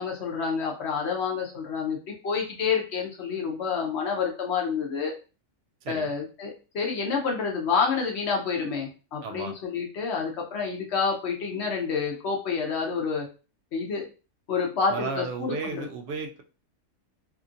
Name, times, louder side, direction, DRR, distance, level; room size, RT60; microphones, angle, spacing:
voice 1, 0.0-2.0 2.2-5.1 5.9-13.3 13.7-14.1 14.5-15.9, left 5 dB, 60° left, 0 dB, 0.8 m, -28 dB
voice 2, 9.2-9.6 14.9-16.4, right 4 dB, 85° right, 5 dB, 0.5 m, -34 dB
2.8 x 2.4 x 2.5 m, 0.34 s
omnidirectional pair, 1.6 m